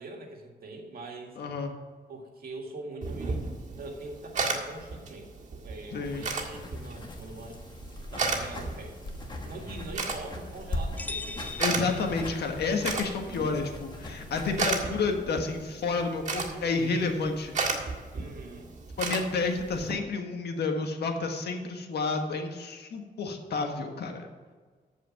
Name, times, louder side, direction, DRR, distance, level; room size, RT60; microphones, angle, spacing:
voice 1, 0.0-1.4 2.1-7.6 8.1-9.0 9.4-11.4 13.3-13.6 18.1-18.7, right 2 dB, 65° right, 2 dB, 1.9 m, -43 dB
voice 2, 1.4-1.7 5.9-6.3 11.6-17.5 19.0-24.3, left 4 dB, 75° left, 4 dB, 1.5 m, -30 dB
sound 1, 3.0-19.9, right 4 dB, 45° right, 1.9 m, -35 dB
sound 2, 6.0-14.8, left 2 dB, 25° left, 1.3 m, -40 dB
sound 3, 11.0-12.8, left 3 dB, 10° left, 0.4 m, -40 dB
14.5 x 5.1 x 5.9 m, 1.5 s
wide cardioid pair, 165°, 17 cm